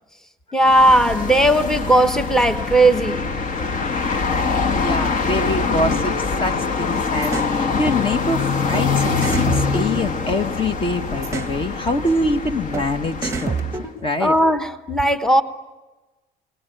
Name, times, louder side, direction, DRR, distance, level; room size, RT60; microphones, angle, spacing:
voice 1, 0.5-3.3 14.2-15.4, right 1 dB, 5° left, 1.1 m, -16 dB
sound 1, 0.6-13.9, left 4 dB, 50° left, 1.5 m, -24 dB
voice 2, 4.5-13.6 14.0-14.3, left 1 dB, 30° left, 1.5 m, -25 dB
sound 2, 7.2-7.5 8.7-8.9 9.2-10.6 11.2-11.6 12.7-12.9 13.2-14.3, right 5 dB, 15° right, 1.1 m, -28 dB
29.5 x 19.0 x 9.2 m
cardioid pair, 110°, 17 cm